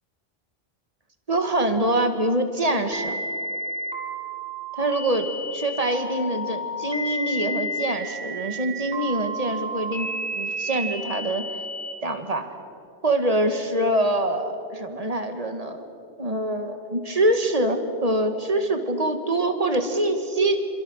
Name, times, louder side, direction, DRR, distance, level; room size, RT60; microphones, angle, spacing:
voice 1, 1.3-3.2 4.8-11.4 12.0-12.5 13.0-15.9 16.2-20.7, right 1 dB, 35° right, 6 dB, 2.0 m, -24 dB
sound 1, 2.9-11.9, equal, 5° right, 4.1 m, -32 dB
27.0 x 26.5 x 6.6 m, 2.7 s
omnidirectional pair, 1.1 m